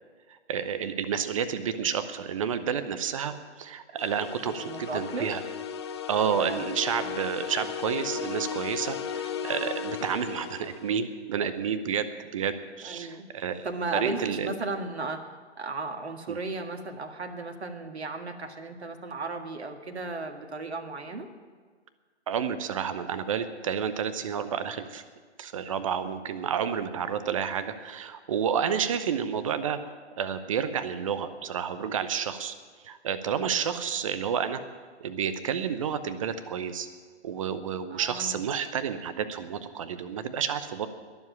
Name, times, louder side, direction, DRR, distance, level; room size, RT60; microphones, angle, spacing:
voice 1, 0.5-5.4 6.1-13.7 13.9-14.5 16.3-16.4 22.3-25.0 25.4-29.8 30.2-32.5 32.8-34.6 35.0-36.9 37.2-40.9, right 7 dB, 30° right, 12 dB, 0.8 m, -30 dB
sound 1, 4.0-11.0, left 7 dB, 25° left, 0.6 m, -35 dB
voice 2, 4.6-5.3 6.3-6.7 12.8-13.3 13.6-15.2 15.6-21.3 28.6-28.8 33.5-33.8 37.9-38.4, right 3 dB, 65° right, 5 dB, 1.8 m, -35 dB
21.0 x 7.5 x 8.5 m, 1.5 s
figure-of-eight pair, 135°, 36 cm